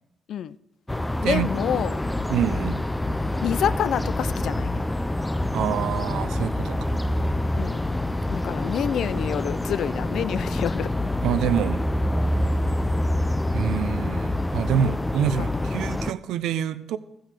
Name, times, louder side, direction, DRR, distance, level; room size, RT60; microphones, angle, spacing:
sound 1, 0.9-16.1, left 1 dB, 10° left, 0.5 m, -26 dB
voice 1, 1.2-2.0 3.4-4.8 7.6-7.9 8.3-10.9 15.4-15.7, left 9 dB, 70° left, 0.5 m, -28 dB
voice 2, 2.3-2.8 5.5-7.0 11.2-11.9 13.5-17.0, right 9 dB, 85° right, 0.7 m, -26 dB
15.0 x 7.9 x 6.7 m
cardioid pair, 90°, 0 cm